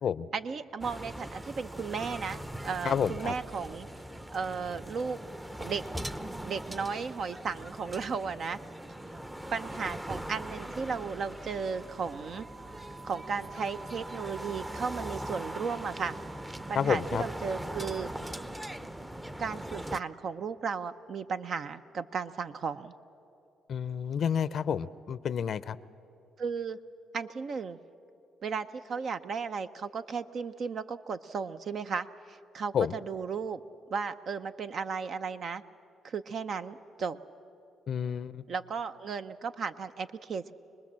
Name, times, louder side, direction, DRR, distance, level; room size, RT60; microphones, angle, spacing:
voice 1, 0.3-3.9 4.3-5.2 5.6-5.8 6.4-8.6 9.5-12.5 13.0-16.2 16.5-18.1 19.4-22.9 26.4-26.8 27.1-27.8 28.4-33.6 33.9-35.6 36.0-37.2 38.5-40.5, right 5 dB, 55° right, 10 dB, 0.6 m, -35 dB
sound 1, 0.8-20.0, right 1 dB, 10° right, 0.7 m, -41 dB
voice 2, 2.8-3.3 16.8-17.2 23.7-25.8 32.7-33.0 37.9-38.4, left 7 dB, 60° left, 16 dB, 0.5 m, -30 dB
sound 2, 11.2-19.0, right 4 dB, 90° right, 4.4 m, -50 dB
26.0 x 20.0 x 7.4 m, 2.7 s
cardioid pair, 90°, 0 cm